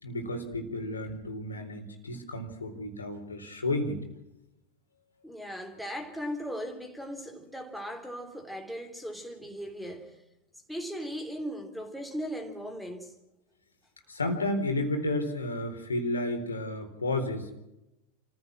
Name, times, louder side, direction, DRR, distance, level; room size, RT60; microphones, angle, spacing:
voice 1, 0.0-4.0 14.1-17.5, left 1 dB, 75° left, 3.8 m, -32 dB
voice 2, 5.2-10.2 10.7-13.1, equal, ahead, 3.4 m, -38 dB
29.0 x 15.5 x 6.1 m
figure-of-eight pair, 90°, 0 cm